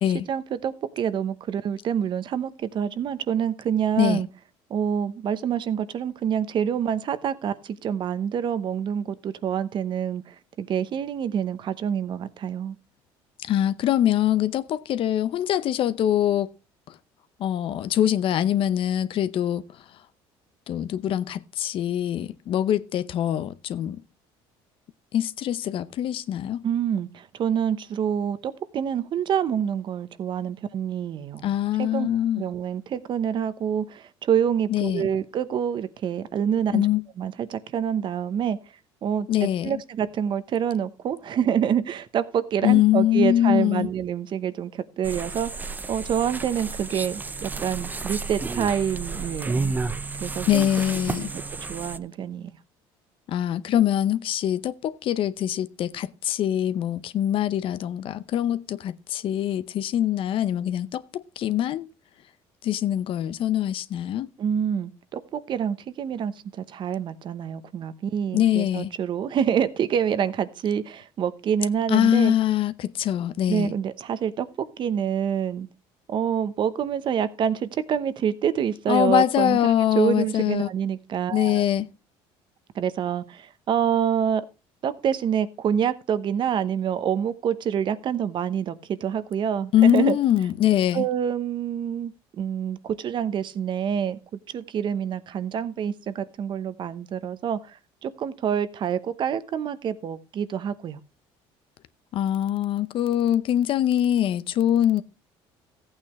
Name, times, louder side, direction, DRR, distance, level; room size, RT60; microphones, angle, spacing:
voice 1, 0.3-4.3 4.7-12.8 26.6-31.5 31.8-32.1 32.4-36.9 37.2-38.6 39.0-49.7 50.2-50.7 51.1-51.4 51.7-52.5 64.4-72.3 73.5-74.5 74.8-75.7 76.1-79.6 79.9-81.6 82.7-84.4 84.8-90.2 90.9-94.2 94.5-101.0, right 8 dB, 45° right, 0.9 m, -27 dB
voice 2, 13.4-16.5 17.4-19.6 20.7-24.0 25.1-26.6 31.4-32.5 34.7-35.1 36.7-37.0 39.3-39.8 42.6-43.9 50.5-51.3 53.3-61.9 62.6-64.3 68.3-68.9 71.9-73.7 78.9-80.7 81.3-81.9 89.7-91.1 102.1-105.0, left 11 dB, 55° left, 0.7 m, -23 dB
sound 1, 45.0-52.0, right 4 dB, 15° right, 0.5 m, -31 dB
14.5 x 8.9 x 3.2 m
cardioid pair, 115°, 11 cm